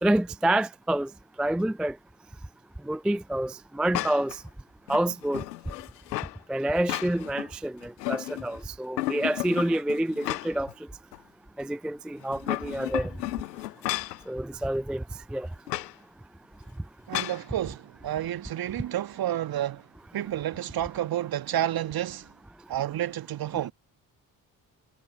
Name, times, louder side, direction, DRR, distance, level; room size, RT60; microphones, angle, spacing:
voice 1, 0.0-1.1 1.4-2.0 2.9-4.4 4.9-5.4 6.5-10.7 11.6-13.1 14.3-15.0 15.3-15.5, right 1 dB, ahead, 0.4 m, -27 dB
sound 1, 3.9-4.4 4.9-6.4 6.7-7.5 7.8-8.6 9.0-10.7 11.1-11.2 12.2-14.2 15.7-15.9 17.1-17.4, left 17 dB, 75° left, 0.8 m, -33 dB
voice 2, 17.1-19.9 20.1-22.3 22.7-23.7, right 12 dB, 45° right, 1.6 m, -30 dB
figure-of-eight pair, 40°, 49 cm